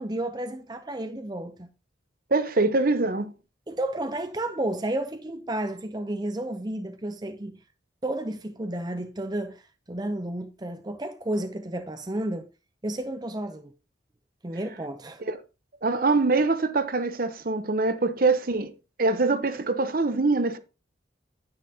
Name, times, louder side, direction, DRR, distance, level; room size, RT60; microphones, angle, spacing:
voice 1, 0.0-1.7 3.7-7.6 8.0-12.5 12.8-13.7 14.4-15.2, right 1 dB, 20° right, 0.6 m, -32 dB
voice 2, 2.3-3.3 15.3-15.4 15.8-18.7 19.0-20.6, right 3 dB, 50° right, 0.9 m, -24 dB
9.7 x 9.7 x 2.8 m
head